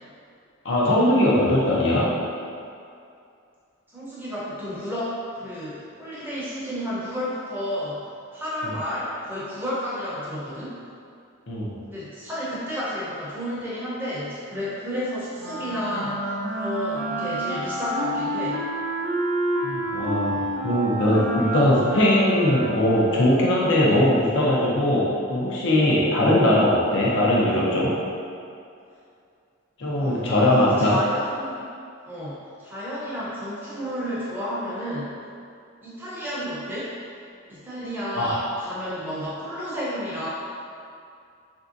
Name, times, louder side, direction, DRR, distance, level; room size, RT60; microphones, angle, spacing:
voice 1, 0.6-2.1 11.5-11.7 19.6-27.9 29.8-31.0 38.2-38.4, left 1 dB, 55° left, -5 dB, 0.6 m, -20 dB
voice 2, 3.9-10.8 11.9-18.6 26.9-27.0 30.0-31.6 32.1-35.1 35.8-36.9 37.5-40.3, equal, 10° right, -10 dB, 0.7 m, -31 dB
Wind instrument woodwind instrument, 15.4-23.6, right 1 dB, 75° right, 0.5 m, -29 dB
3.3 x 2.6 x 2.5 m, 2.4 s
head